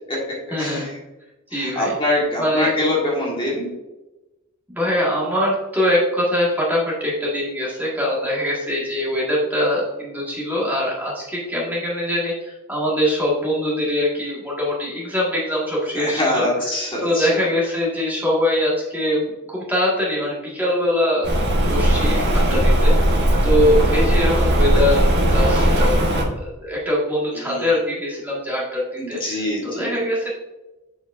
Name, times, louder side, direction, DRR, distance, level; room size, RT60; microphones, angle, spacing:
voice 1, 0.5-0.9 1.5-2.0 2.4-2.7 4.7-16.4 17.0-21.3 21.7-22.9 23.4-26.0 26.3-30.3, left 1 dB, 10° right, -6 dB, 1.8 m, -23 dB
voice 2, 1.5-3.7 16.0-17.5 22.2-22.6 27.4-27.6 29.0-29.9, left 1 dB, 20° left, -4 dB, 1.7 m, -24 dB
Rain, 21.2-26.2, right 1 dB, 50° right, 1.3 m, -17 dB
7.3 x 6.2 x 2.6 m, 1.1 s
head